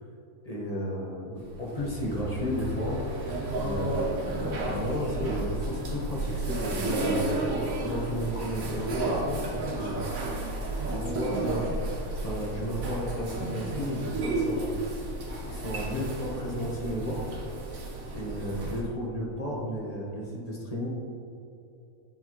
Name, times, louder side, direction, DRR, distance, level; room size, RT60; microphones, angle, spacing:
voice 1, 0.4-3.0 3.5-10.0 10.8-11.8 12.1-14.7 15.4-17.2 18.1-20.9, equal, 30° left, -3 dB, 0.9 m, -33 dB
sound 1, 1.4-18.8, right 2 dB, 65° right, 1.4 m, -32 dB
8.7 x 4.2 x 2.9 m, 2.7 s
omnidirectional pair, 1.6 m